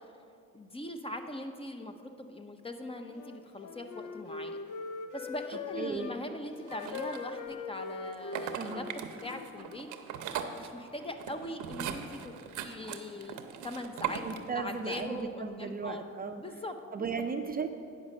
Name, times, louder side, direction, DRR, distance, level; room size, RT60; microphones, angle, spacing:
voice 1, 0.5-4.6 5.1-9.9 10.5-13.4 13.6-14.2 14.6-16.0 16.4-17.1, left 1 dB, 20° left, 6 dB, 0.6 m, -41 dB
Wind instrument woodwind instrument, 3.1-6.2 6.7-9.8, left 5 dB, 70° left, 0.6 m, -42 dB
voice 2, 5.8-6.1 8.5-8.9 14.2-16.4 16.9-17.7, right 5 dB, 30° right, 6 dB, 0.5 m, -36 dB
sound 1, 6.7-7.6 8.1-15.2, right 8 dB, 80° right, 0.7 m, -40 dB
9.5 x 5.2 x 6.4 m, 2.5 s
cardioid pair, 90°, 30 cm